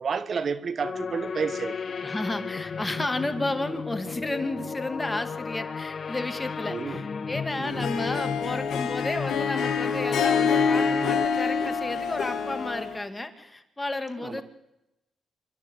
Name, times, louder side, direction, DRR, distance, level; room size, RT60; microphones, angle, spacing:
voice 1, 0.0-1.9 6.7-7.0 7.6-7.9 14.2-14.4, right 5 dB, 55° right, 1.2 m, -31 dB
sound 1, 0.8-11.3, left 5 dB, 50° left, 0.8 m, -33 dB
voice 2, 2.0-14.4, left 2 dB, 20° left, 2.6 m, -32 dB
Harp, 7.7-13.0, left 6 dB, 75° left, 2.1 m, -27 dB
27.0 x 12.5 x 8.5 m
supercardioid pair, 60°, 0 cm